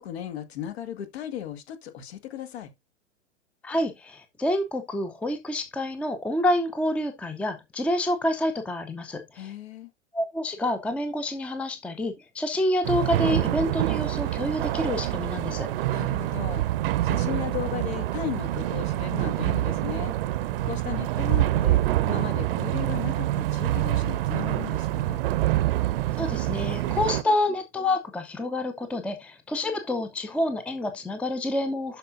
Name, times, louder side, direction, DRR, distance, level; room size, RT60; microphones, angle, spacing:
voice 1, 0.0-2.7 9.3-9.9 15.9-20.1 20.6-25.2, left 11 dB, 55° left, 1.8 m, -36 dB
voice 2, 3.6-9.5 10.1-15.7 26.2-32.0, left 1 dB, 5° left, 0.7 m, -28 dB
sound 1, 12.8-27.2, right 14 dB, 50° right, 0.8 m, -26 dB
12.0 x 4.9 x 2.6 m
figure-of-eight pair, 105°, 38 cm